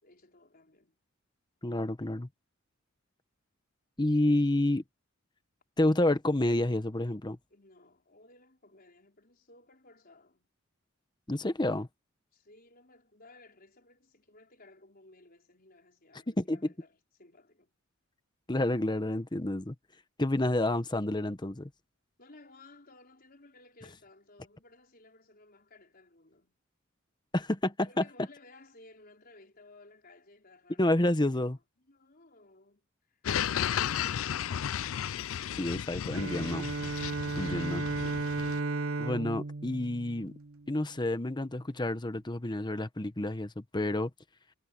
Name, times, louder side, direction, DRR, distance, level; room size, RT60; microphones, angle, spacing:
voice 1, 0.0-1.0 7.5-10.5 12.3-17.7 22.2-26.6 27.8-31.1 31.8-33.2, left 2 dB, 45° left, 4.9 m, -58 dB
voice 2, 1.6-2.3 4.0-4.8 5.8-7.4 11.3-11.9 16.4-16.6 18.5-19.7 20.2-21.7 27.3-28.0 30.8-31.6 35.6-36.7 37.4-37.8 39.0-40.3 40.7-44.1, left 1 dB, 20° left, 1.0 m, -29 dB
sound 1, 33.2-38.6, left 9 dB, 70° left, 0.4 m, -34 dB
Bowed string instrument, 36.1-40.8, right 3 dB, 80° right, 0.9 m, -34 dB
head